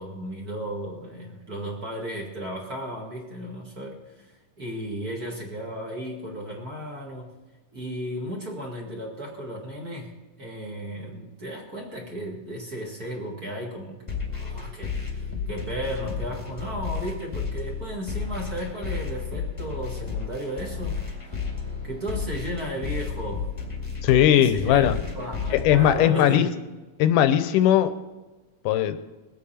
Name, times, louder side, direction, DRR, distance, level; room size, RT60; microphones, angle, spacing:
voice 1, 0.0-4.3 4.6-7.3 7.7-10.1 10.4-14.0 14.3-21.0 21.8-23.5 24.4-24.9 25.2-26.6, equal, 35° right, -1 dB, 1.9 m, -34 dB
sound 1, 14.1-26.1, left 5 dB, 15° left, 1.3 m, -32 dB
voice 2, 24.0-24.9 25.5-26.5 27.0-28.0 28.7-29.0, left 11 dB, 80° left, 11 dB, 2.2 m, -19 dB
22.0 x 8.7 x 4.3 m, 1.2 s
omnidirectional pair, 3.8 m